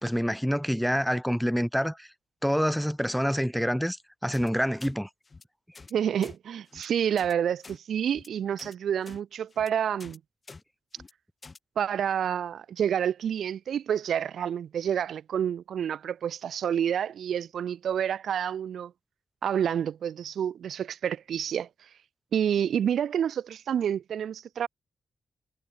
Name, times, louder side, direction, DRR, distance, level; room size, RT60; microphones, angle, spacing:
voice 1, 0.0-2.1 2.4-4.0 4.2-5.1, equal, ahead, 2.4 m, -27 dB
sound 1, 4.3-4.5 4.8-4.9 5.2-5.4 5.7-5.9 6.2-6.4 6.7-6.9 7.2-7.3 7.6-7.8 8.1-8.3 8.6-8.7 9.0-9.2 9.5-9.7 10.0-10.2 10.5-10.6 10.9-11.1 11.4-11.6, left 4 dB, 25° left, 7.7 m, -47 dB
voice 2, 5.9-10.2 11.8-18.9 19.4-21.7 22.3-24.7, right 9 dB, 75° right, 3.2 m, -28 dB
wide cardioid pair, 170°, 0 cm